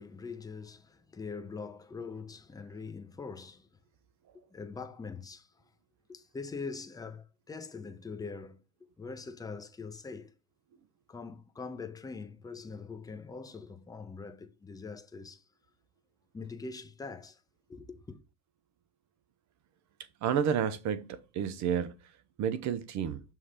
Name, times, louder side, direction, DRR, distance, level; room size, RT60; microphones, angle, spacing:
voice 1, 0.0-3.7 4.3-5.5 6.1-10.3 11.1-15.4 16.3-17.4 17.7-18.2, left 4 dB, 10° left, 0.7 m, -43 dB
voice 2, 20.2-23.2, right 8 dB, 35° right, 0.7 m, -31 dB
6.5 x 3.3 x 5.7 m
hypercardioid pair, 105°, 49 cm